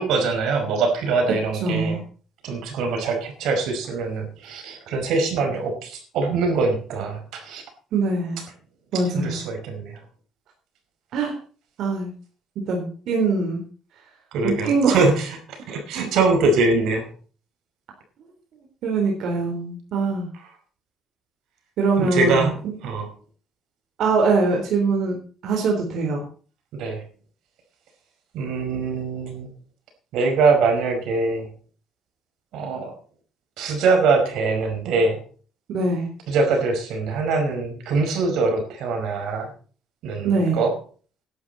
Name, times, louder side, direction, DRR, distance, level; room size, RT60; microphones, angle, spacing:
voice 1, 0.0-2.0 2.4-7.6 9.1-10.0 14.3-17.1 22.0-23.1 26.7-27.0 28.3-29.5 30.1-31.5 32.5-32.9 33.6-35.2 36.3-39.5 40.0-40.7, right 3 dB, 80° right, 5 dB, 5.2 m, -23 dB
voice 2, 1.6-2.0 7.9-8.4 8.9-9.4 11.1-11.4 11.8-12.1 12.7-13.6 14.4-15.0 18.8-20.3 21.8-22.8 24.0-25.2 25.4-26.2 35.7-36.1 40.2-40.6, right 4 dB, 65° right, 1 dB, 4.0 m, -22 dB
16.5 x 11.5 x 4.3 m, 0.40 s
cardioid pair, 140°, 0 cm